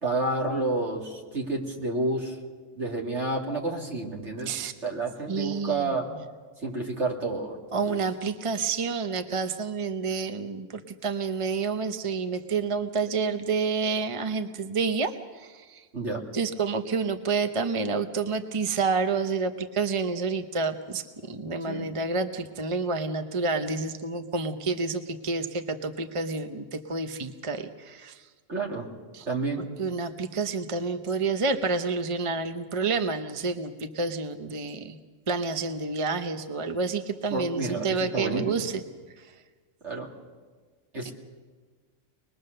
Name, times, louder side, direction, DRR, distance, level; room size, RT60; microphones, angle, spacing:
voice 1, 0.0-2.4 2.7-6.1 6.6-8.0 15.9-16.2 21.7-21.9 28.5-28.9 29.3-29.7 37.3-38.7 39.8-40.1 40.9-41.1, right 2 dB, 65° right, -1 dB, 3.0 m, -30 dB
voice 2, 5.3-5.9 7.7-15.8 16.3-28.2 29.1-29.3 29.8-35.0 35.3-38.7 41.0-41.1, right 4 dB, 30° right, 7 dB, 0.8 m, -29 dB
24.0 x 20.5 x 6.7 m, 1.4 s
omnidirectional pair, 1.3 m